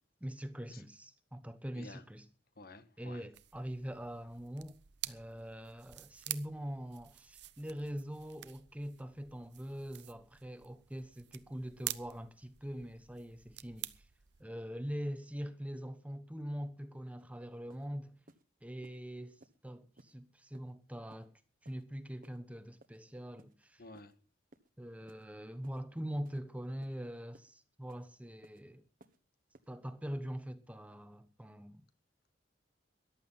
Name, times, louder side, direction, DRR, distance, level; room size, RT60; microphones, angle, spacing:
voice 1, 0.2-2.2 3.0-4.8 5.0-13.9 14.4-18.2 18.6-21.3 21.6-23.8 24.8-28.8 29.7-31.8, equal, 10° right, 1.1 m, -43 dB
voice 2, 2.5-3.3 23.8-24.2, left 2 dB, 55° left, 1.5 m, -52 dB
sound 1, 3.3-14.4, right 14 dB, 70° right, 0.8 m, -48 dB
sound 2, 17.2-17.3 17.7-17.9 18.3-18.4 18.8-19.0 19.4-19.6 20.0-20.1 20.5-20.7 21.1-21.3 21.6-21.8 22.2-22.4 22.8-23.0 23.4-23.5 23.9-24.1 24.5-24.7 25.1-25.3 25.6-25.8 26.2-26.4 26.8-27.0 27.3-27.5 27.9-28.1 28.4-28.6 29.0-29.2 29.5-29.7, right 2 dB, 50° right, 1.3 m, -61 dB
14.0 x 12.0 x 5.6 m
head